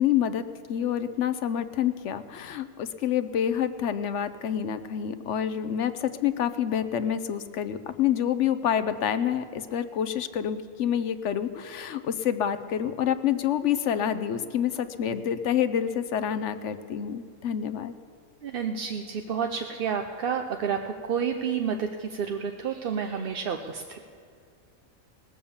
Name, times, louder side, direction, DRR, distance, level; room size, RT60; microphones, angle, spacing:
voice 1, 0.0-17.9, left 9 dB, 65° left, 11 dB, 0.9 m, -27 dB
voice 2, 18.4-24.1, right 7 dB, 55° right, 5 dB, 0.7 m, -30 dB
20.5 x 7.0 x 7.1 m, 2.4 s
omnidirectional pair, 1.4 m